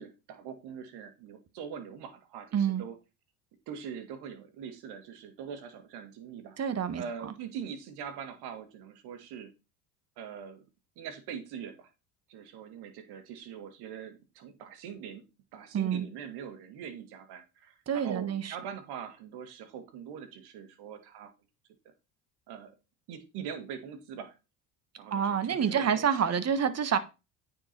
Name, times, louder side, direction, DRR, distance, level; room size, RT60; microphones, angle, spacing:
voice 1, 0.0-2.9 3.7-6.6 6.9-9.5 10.2-10.6 11.0-11.9 12.3-15.2 15.5-21.3 22.5-22.7 23.1-24.3 25.0-26.4, right 7 dB, 70° right, 2.1 m, -42 dB
voice 2, 2.5-2.8 6.6-7.3 15.7-16.1 17.9-18.6 25.1-27.0, right 7 dB, 40° right, 1.4 m, -28 dB
9.2 x 4.9 x 4.4 m
supercardioid pair, 80°, 41 cm